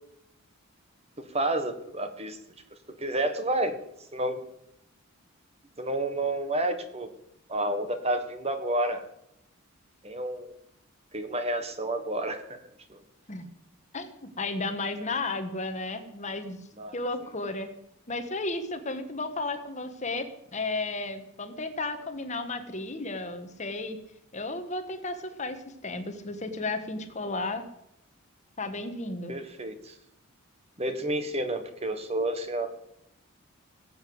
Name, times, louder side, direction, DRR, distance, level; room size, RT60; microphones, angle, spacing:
voice 1, 1.3-2.4 3.0-3.8 4.1-4.4 5.8-7.1 7.5-9.0 10.0-10.5 11.1-12.6 12.9-13.0 16.8-16.9 29.3-29.9 30.8-32.7, right 1 dB, 30° right, 9 dB, 1.5 m, -30 dB
voice 2, 13.9-16.6 16.9-17.7 18.1-24.0 24.3-27.6 28.6-29.3, left 2 dB, 35° left, 8 dB, 1.5 m, -33 dB
19.0 x 8.0 x 7.9 m, 0.78 s
head